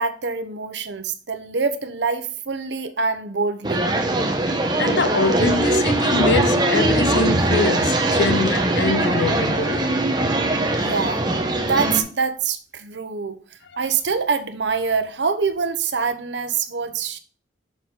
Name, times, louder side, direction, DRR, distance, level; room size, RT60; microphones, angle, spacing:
voice 1, 0.0-3.9 10.8-11.2 11.6-13.4 13.8-17.2, right 5 dB, 80° right, 1.0 m, -25 dB
sound 1, 3.6-12.0, right 2 dB, 25° right, 0.9 m, -21 dB
voice 2, 4.8-10.1, left 4 dB, 70° left, 0.6 m, -24 dB
6.8 x 6.3 x 3.8 m
head